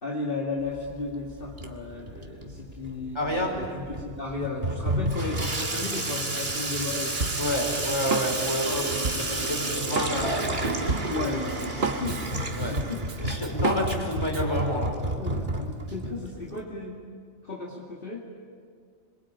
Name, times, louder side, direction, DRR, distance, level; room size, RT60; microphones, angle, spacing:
voice 1, 0.0-7.2 8.6-10.3 11.1-12.2 12.6-13.0 14.1-14.2 15.2-17.0 17.4-18.3, left 3 dB, 50° left, -2 dB, 2.5 m, -35 dB
Water tap faucet / Sink (filling or washing), 0.6-16.6, right 1 dB, 45° right, 2.2 m, -31 dB
voice 2, 3.1-3.5 7.4-10.8 12.6-12.8 13.2-14.9, equal, 25° left, 1 dB, 5.1 m, -29 dB
Drum kit, 7.2-14.5, right 3 dB, 60° right, 1.7 m, -32 dB
26.5 x 23.0 x 8.8 m, 2.1 s
omnidirectional pair, 1.2 m